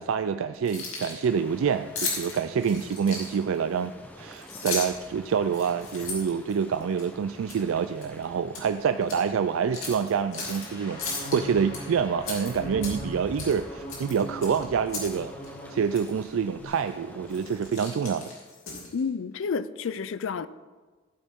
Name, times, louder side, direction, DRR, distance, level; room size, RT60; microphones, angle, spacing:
voice 1, 0.0-3.9 4.2-15.3 15.7-18.3, right 6 dB, 80° right, 0.3 m, -27 dB
Keys jangling, 0.5-1.3 2.0-3.6 4.3-5.1 5.5-7.0 7.5-7.7 8.0-8.7 9.0-9.2 9.7-10.7 11.0-11.8 12.2-13.1 13.4-13.6 13.9-15.2 15.4-15.5 15.9-16.1 16.7-16.9 17.3-19.0, left 4 dB, 90° left, 2.8 m, -35 dB
sound 1, 1.2-17.7, equal, 10° left, 0.7 m, -47 dB
sound 2, 10.3-16.0 16.3-16.7, equal, 35° left, 3.8 m, -41 dB
voice 2, 18.9-20.5, left 5 dB, 75° left, 0.4 m, -30 dB
14.0 x 8.3 x 3.6 m
head